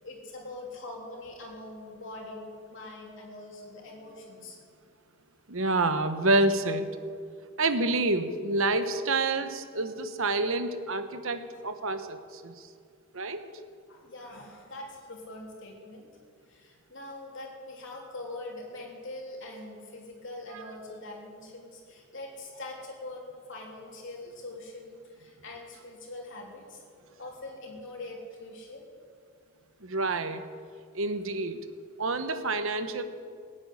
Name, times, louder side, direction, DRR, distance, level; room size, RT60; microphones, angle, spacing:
voice 1, 0.0-4.6 13.9-16.1 16.5-26.8 27.2-28.9, left 2 dB, 55° left, -1 dB, 3.4 m, -43 dB
voice 2, 5.5-6.9 7.6-12.7 13.1-13.4 20.5-20.6 29.8-30.4 30.9-31.6 32.0-33.0, right 2 dB, 65° right, 9 dB, 1.1 m, -28 dB
16.0 x 9.0 x 9.5 m, 2.2 s
head